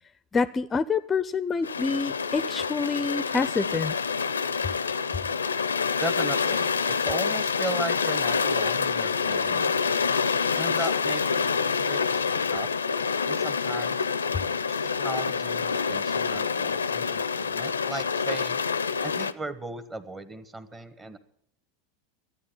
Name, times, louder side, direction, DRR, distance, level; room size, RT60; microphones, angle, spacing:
voice 1, 0.3-3.9, left 4 dB, 20° left, 15 dB, 0.5 m, -27 dB
sound 1, 1.6-19.3, left 5 dB, 90° left, 0.5 m, -27 dB
voice 2, 6.0-9.9 10.5-12.7 13.3-14.1 14.7-18.6 19.0-21.2, right 2 dB, 20° right, 11 dB, 1.3 m, -37 dB
13.0 x 9.4 x 9.1 m, 0.71 s
hypercardioid pair, 90°, 0 cm